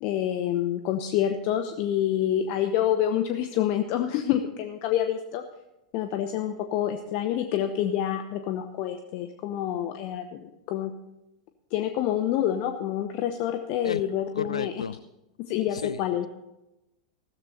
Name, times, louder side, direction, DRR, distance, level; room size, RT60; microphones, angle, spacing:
voice 1, 0.0-5.4 5.9-10.9 11.7-14.8 15.4-16.3, left 10 dB, 45° left, 7 dB, 0.9 m, -27 dB
voice 2, 14.4-15.0 15.7-16.0, left 6 dB, 75° left, 18 dB, 0.5 m, -32 dB
15.0 x 13.5 x 4.3 m, 0.94 s
figure-of-eight pair, 90°, 3 cm